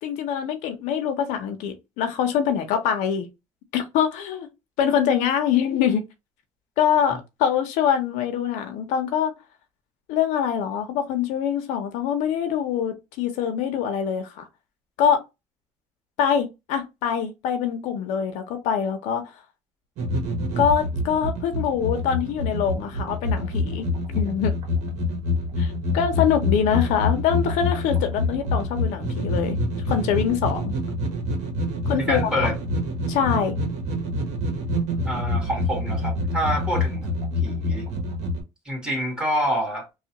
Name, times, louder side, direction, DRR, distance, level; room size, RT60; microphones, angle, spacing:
voice 1, 0.0-3.3 3.7-4.5 4.8-6.0 6.8-9.3 10.1-14.5 15.0-15.2 16.2-19.3 20.6-23.9 24.2-24.5 25.6-29.6 29.9-30.7 31.9-32.3 33.1-33.6, left 8 dB, 90° left, 0.7 m, -24 dB
sound 1, 20.0-38.4, left 2 dB, 70° right, 1.1 m, -26 dB
voice 2, 31.7-32.5 35.0-37.9 38.6-39.8, equal, 5° right, 1.7 m, -27 dB
3.0 x 2.4 x 2.8 m
cardioid pair, 125°, 12 cm